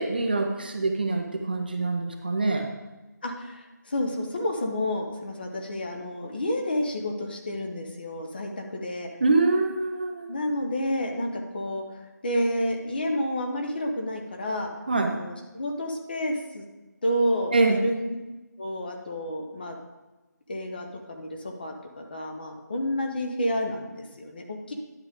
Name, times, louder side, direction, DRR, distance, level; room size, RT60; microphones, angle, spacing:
voice 1, 0.0-2.7 9.2-10.3 14.9-15.1 17.5-17.8, right 3 dB, 30° right, 3 dB, 0.6 m, -24 dB
voice 2, 3.2-9.1 10.3-11.8 12.2-14.7 15.1-16.6 17.0-18.0 18.6-19.8 20.5-24.7, equal, 30° left, 3 dB, 0.9 m, -30 dB
10.0 x 6.7 x 3.7 m, 1.1 s
figure-of-eight pair, 175°, 10 cm